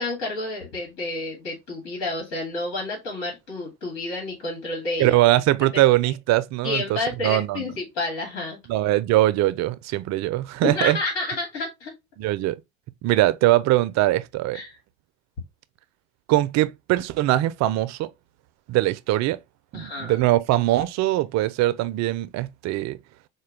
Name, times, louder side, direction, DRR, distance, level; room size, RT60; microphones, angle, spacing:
voice 1, 0.0-5.2 5.7-5.8 6.6-8.6 10.6-11.9 14.5-14.7 19.7-20.2, left 2 dB, 70° left, 1.9 m, -30 dB
voice 2, 5.0-7.7 8.7-11.0 12.2-12.6 13.0-14.6 16.3-18.1 18.7-19.4 19.7-23.0, right 15 dB, 55° right, 0.5 m, -22 dB
4.4 x 2.2 x 3.2 m
hypercardioid pair, 80°, 33 cm